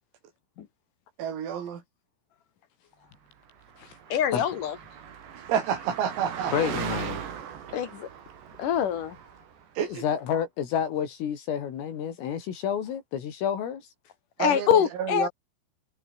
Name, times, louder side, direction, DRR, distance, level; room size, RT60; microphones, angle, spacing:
voice 1, 1.2-1.8 5.4-6.7 9.8-10.1 14.4-15.3, right 8 dB, 90° right, 6.7 m, -29 dB
Car passing by, 3.7-9.6, right 8 dB, 60° right, 5.2 m, -38 dB
voice 2, 4.1-4.8 7.7-8.1 8.6-9.2 14.4-15.3, left 9 dB, 55° left, 2.5 m, -24 dB
voice 3, 6.5-7.2 9.8-13.9, left 8 dB, 75° left, 6.0 m, -29 dB
omnidirectional pair, 5.9 m